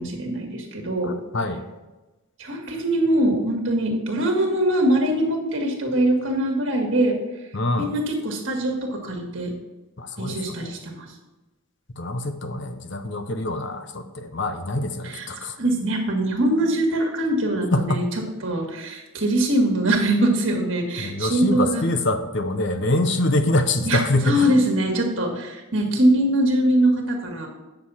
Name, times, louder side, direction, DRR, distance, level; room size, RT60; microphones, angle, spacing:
voice 1, 0.0-1.1 2.4-7.2 7.8-9.5 10.2-11.1 15.0-15.3 15.6-18.0 18.4-21.9 23.9-27.5, right 1 dB, 60° right, 1 dB, 1.9 m, -22 dB
voice 2, 1.0-1.6 7.5-7.9 10.0-10.7 12.0-15.6 17.7-18.1 21.0-24.5, left 2 dB, 55° left, 8 dB, 0.8 m, -25 dB
9.6 x 6.8 x 4.2 m, 1.1 s
head